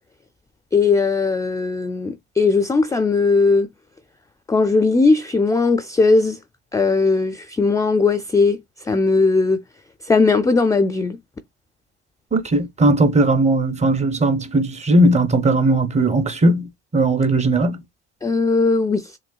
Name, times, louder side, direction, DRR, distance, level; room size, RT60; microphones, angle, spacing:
voice 1, 0.7-3.7 4.5-6.4 6.7-8.6 8.8-9.6 10.0-11.2 18.2-19.2, left 4 dB, 10° left, 0.3 m, -18 dB
voice 2, 12.3-17.8, right 2 dB, 20° right, 0.7 m, -18 dB
6.3 x 2.2 x 2.2 m
supercardioid pair, 85°, 34 cm